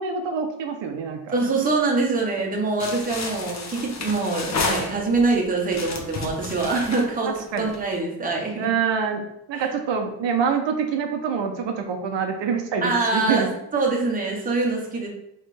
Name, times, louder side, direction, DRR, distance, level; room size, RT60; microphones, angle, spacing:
voice 1, 0.0-1.4 7.5-7.7 8.6-9.2 9.5-13.5, right 6 dB, 65° right, 4 dB, 0.7 m, -25 dB
voice 2, 1.3-8.7 9.5-9.6 12.8-15.1, right 3 dB, 20° right, -1 dB, 0.8 m, -24 dB
sound 1, 2.8-5.3 5.7-7.9, left 3 dB, 35° left, 0.6 m, -31 dB
4.3 x 3.2 x 3.2 m, 0.83 s
cardioid pair, 145°, 47 cm